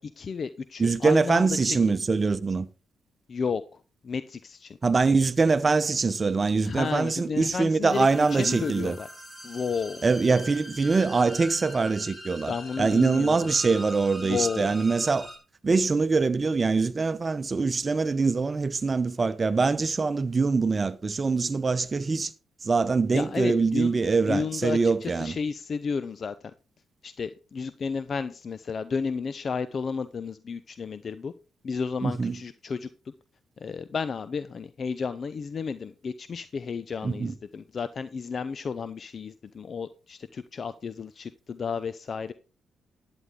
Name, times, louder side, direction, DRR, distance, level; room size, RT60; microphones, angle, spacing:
voice 1, 0.0-1.8 3.3-4.8 6.6-9.1 9.4-10.0 12.5-13.4 14.2-14.7 23.1-24.0 24.3-26.3 27.0-31.3 31.6-33.1 33.6-42.3, left 5 dB, 55° left, 0.6 m, -32 dB
voice 2, 0.8-2.7 4.8-9.0 10.0-15.2 15.6-22.3 22.6-25.4 32.0-32.4 37.0-37.3, right 4 dB, 40° right, 0.8 m, -24 dB
sound 1, 7.9-15.4, equal, 15° left, 4.6 m, -42 dB
11.0 x 8.9 x 3.7 m
supercardioid pair, 50°, 0 cm